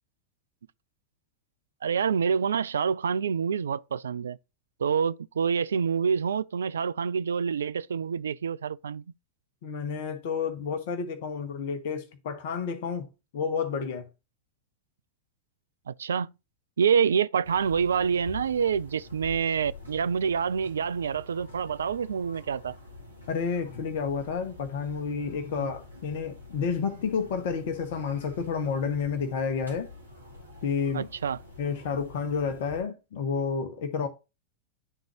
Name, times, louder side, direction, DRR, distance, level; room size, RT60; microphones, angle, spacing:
voice 1, 1.8-4.4 4.8-9.0 15.9-16.3 16.8-22.8 25.6-25.7 30.9-31.4, right 6 dB, 70° right, 0.3 m, -27 dB
voice 2, 9.6-13.1 13.3-14.0 23.3-29.9 30.6-31.1 31.6-34.1, left 6 dB, 50° left, 1.0 m, -30 dB
sound 1, 17.4-32.8, left 3 dB, 85° right, 2.0 m, -47 dB
11.0 x 3.8 x 2.9 m
figure-of-eight pair, 90°, 0 cm